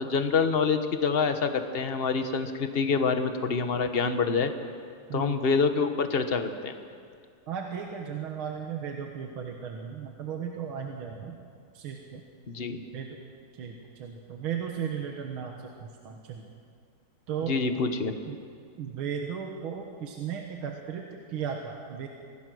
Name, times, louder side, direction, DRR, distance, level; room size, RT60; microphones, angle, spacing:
voice 1, 0.0-4.5 5.1-6.7 12.5-12.8 17.5-18.1, left 5 dB, 35° left, 8 dB, 1.0 m, -26 dB
voice 2, 5.1-5.4 7.5-11.4 11.7-12.2 12.9-13.2 13.5-16.5 17.3-17.6 18.3-18.4 18.8-22.1, right 7 dB, 75° right, 2 dB, 2.2 m, -36 dB
24.5 x 18.0 x 6.3 m, 2.3 s
omnidirectional pair, 2.4 m